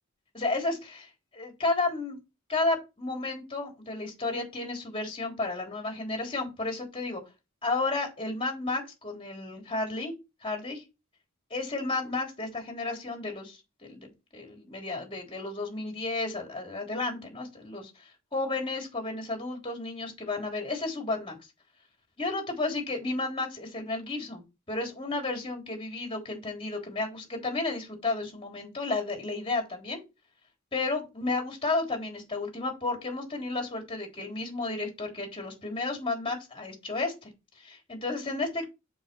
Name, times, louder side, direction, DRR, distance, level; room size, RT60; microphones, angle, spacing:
voice 1, 0.3-2.2 2.5-7.2 7.6-10.1 10.4-10.8 11.5-21.4 22.2-30.0 30.7-37.3 37.6-38.6, left 3 dB, 25° left, 1 dB, 3.6 m, -32 dB
7.1 x 5.6 x 4.6 m, 0.26 s
head